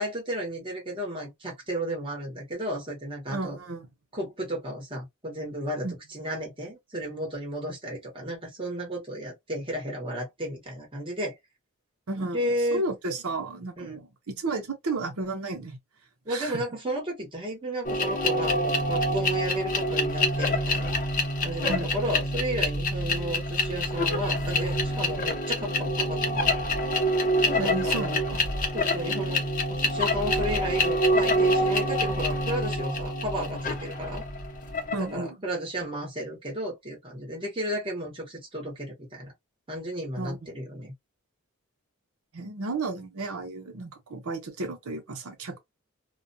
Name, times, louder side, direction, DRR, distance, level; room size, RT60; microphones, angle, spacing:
voice 1, 0.0-3.6 4.1-11.3 12.2-12.8 13.8-14.0 16.2-20.9 21.4-26.5 27.4-28.2 28.7-34.2 34.9-39.3 39.7-40.9, equal, 25° right, 1.0 m, -33 dB
voice 2, 3.3-3.9 5.8-6.0 12.1-15.8 16.3-16.6 21.7-21.9 27.6-28.5 34.9-35.4 40.2-40.4 42.3-45.6, right 2 dB, 85° right, 0.7 m, -33 dB
sound 1, 17.8-35.1, left 1 dB, 40° left, 0.6 m, -26 dB
2.4 x 2.2 x 2.6 m
head